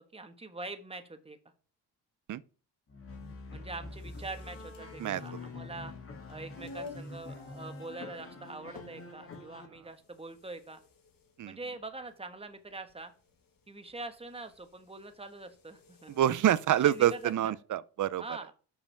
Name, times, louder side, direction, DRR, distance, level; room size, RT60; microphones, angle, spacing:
voice 1, 0.1-1.4 3.5-5.9 6.3-10.8 11.5-13.1 13.7-16.1 16.8-17.5 18.2-18.5, right 3 dB, 15° right, 1.3 m, -44 dB
sound 1, 2.9-9.7, left 3 dB, 35° left, 1.9 m, -45 dB
sound 2, 3.9-17.4, left 3 dB, 55° left, 1.8 m, -53 dB
voice 2, 16.2-18.2, right 11 dB, 50° right, 0.6 m, -26 dB
7.0 x 5.4 x 5.6 m
cardioid pair, 95°, 40 cm